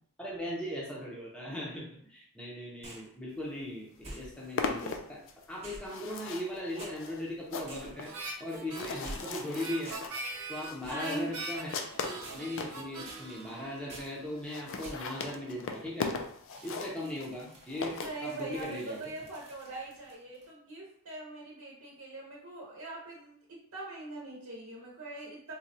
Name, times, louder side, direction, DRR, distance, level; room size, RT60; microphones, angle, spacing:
voice 1, 0.2-5.2 5.5-8.1 8.4-10.0 10.5-11.7 12.1-16.1 16.6-17.9 18.2-19.0, left 1 dB, 5° left, -4 dB, 0.6 m, -38 dB
sound 1, 2.8-3.1 4.0-4.6 5.6-6.5 6.8-7.0 7.7-8.1 9.0-9.5 9.8-10.2 10.8-11.1 12.2-12.7 13.0-13.5 13.9-14.2 14.8-15.2 16.5-20.5, right 1 dB, 30° right, 1.1 m, -49 dB
sound 2, 3.6-3.7 3.9-12.8 13.4-13.5 13.7-13.8 14.0-14.1 14.3-18.7, left 4 dB, 60° left, 0.4 m, -39 dB
Harmonica, 8.0-14.5, right 2 dB, 90° right, 0.9 m, -43 dB
voice 2, 10.9-11.3 17.0-17.1 18.0-25.5, right 2 dB, 65° right, -4 dB, 0.9 m, -42 dB
4.2 x 2.2 x 2.6 m, 0.64 s
head